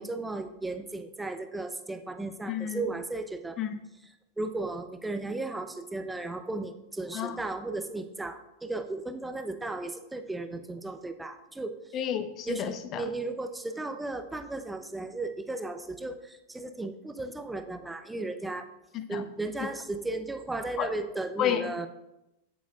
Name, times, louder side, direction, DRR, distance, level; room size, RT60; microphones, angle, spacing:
voice 1, 0.0-3.6 4.4-11.8 12.5-18.7 19.1-21.9, right 2 dB, 5° right, 8 dB, 0.7 m, -35 dB
voice 2, 2.5-2.9 3.6-3.8 7.1-7.4 11.9-13.1 18.9-19.3 20.8-20.9 21.4-21.7, left 9 dB, 35° left, 11 dB, 0.8 m, -31 dB
18.5 x 7.2 x 2.4 m, 0.92 s
figure-of-eight pair, 90°, 0 cm